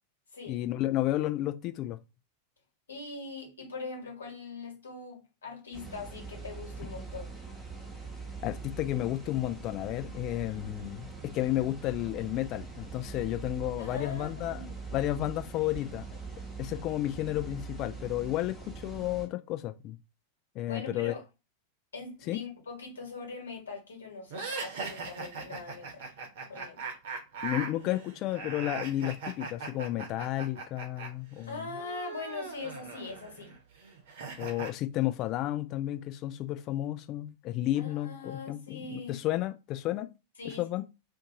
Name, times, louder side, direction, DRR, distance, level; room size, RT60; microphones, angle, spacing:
voice 1, 0.5-2.0 8.4-14.6 14.9-16.1 16.6-20.0 20.5-21.1 22.3-22.4 27.4-31.7 34.4-40.1 40.4-40.8, left 14 dB, 40° left, 0.5 m, -32 dB
voice 2, 2.9-7.3 13.8-14.7 20.6-21.2 21.9-26.1 26.5-27.0 31.5-33.6 37.8-39.2 40.4-40.7, left 4 dB, 70° left, 1.4 m, -42 dB
sound 1, 5.7-19.3, right 4 dB, 10° right, 1.1 m, -43 dB
sound 2, 24.3-31.1 31.3-34.7, right 4 dB, 55° right, 0.9 m, -40 dB
2.6 x 2.6 x 3.8 m
figure-of-eight pair, 90°, 0 cm